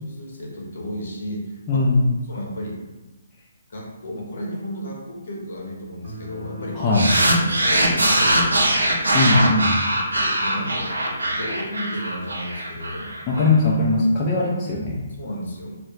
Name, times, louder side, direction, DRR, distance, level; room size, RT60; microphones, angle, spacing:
voice 1, 0.0-1.8 2.2-2.8 3.7-6.8 7.4-8.5 10.2-13.1 15.2-15.7, equal, 65° left, -2 dB, 0.7 m, -33 dB
voice 2, 1.7-2.1 6.7-7.1 9.1-9.8 13.3-15.0, left 2 dB, 25° left, -5 dB, 0.4 m, -19 dB
sound 1, 6.0-9.6, left 2 dB, 40° right, 0.8 m, -40 dB
sound 2, 6.9-13.5, right 1 dB, 85° right, 0.5 m, -21 dB
2.3 x 2.0 x 3.1 m, 1.1 s
figure-of-eight pair, 140°, 0 cm